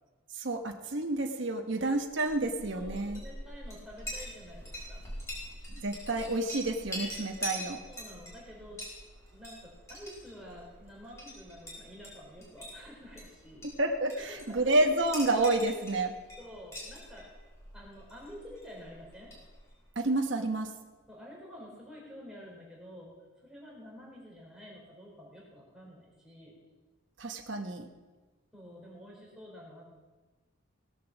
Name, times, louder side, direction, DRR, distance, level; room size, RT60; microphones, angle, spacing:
voice 1, 0.3-3.2 5.7-7.8 13.8-16.2 19.9-20.7 27.2-27.9, right 2 dB, 60° right, 3 dB, 1.0 m, -29 dB
Chink clink, 2.0-19.8, equal, 15° left, 5.0 m, -44 dB
voice 2, 2.7-5.8 7.9-8.8 9.3-13.7 14.1-14.7 16.4-17.3 17.7-19.3 21.1-26.6 28.5-29.9, equal, 5° right, -4 dB, 4.0 m, -49 dB
17.5 x 8.3 x 7.2 m, 1.3 s
head